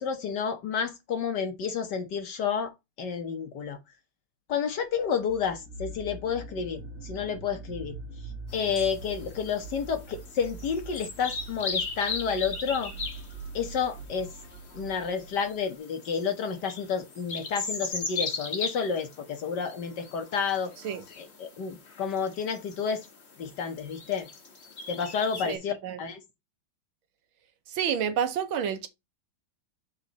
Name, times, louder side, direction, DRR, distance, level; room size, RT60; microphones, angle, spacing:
voice 1, 0.0-2.7 3.0-3.8 4.5-7.9 8.5-12.9 13.5-14.3 14.7-20.7 21.1-23.1 23.4-24.3 24.9-26.2, left 6 dB, 60° left, 1.3 m, -30 dB
sound 1, 5.0-15.7, right 3 dB, 40° right, 2.1 m, -43 dB
sound 2, 8.5-25.6, left 4 dB, 35° left, 1.4 m, -39 dB
voice 2, 25.4-26.0 27.7-28.9, right 8 dB, 70° right, 1.5 m, -29 dB
7.5 x 4.2 x 3.8 m
omnidirectional pair, 2.4 m